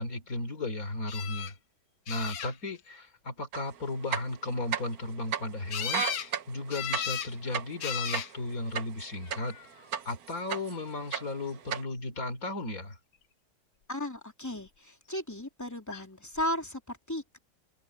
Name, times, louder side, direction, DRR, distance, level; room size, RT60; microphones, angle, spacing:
voice 1, 0.0-1.5 2.1-9.6 10.0-13.0, left 2 dB, 45° left, 3.8 m, -35 dB
sound 1, 1.1-1.5 2.1-2.8 5.7-6.3 6.7-7.3 7.8-8.3 9.2-9.7 15.9-16.0 16.4-16.5, left 9 dB, 65° left, 1.8 m, -35 dB
sound 2, 3.5-3.6 4.0-5.0 5.3-5.4 5.8-9.6 9.9-10.8 11.1-11.8, right 8 dB, 55° right, 1.4 m, -33 dB
voice 2, 13.9-17.4, left 1 dB, 10° left, 3.0 m, -35 dB
omnidirectional pair, 2.0 m